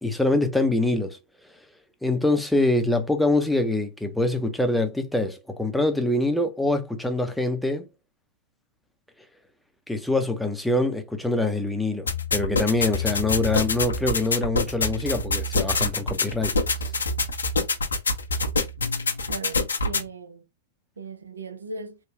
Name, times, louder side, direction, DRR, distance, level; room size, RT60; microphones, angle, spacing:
voice 1, 0.0-1.2 2.0-7.9 9.9-16.5, left 2 dB, 5° left, 0.6 m, -24 dB
sound 1, 12.1-20.0, left 3 dB, 85° left, 0.8 m, -26 dB
voice 2, 19.3-20.4 21.0-22.0, right 4 dB, 85° right, 0.7 m, -37 dB
3.5 x 2.2 x 2.9 m
hypercardioid pair, 110°, 0 cm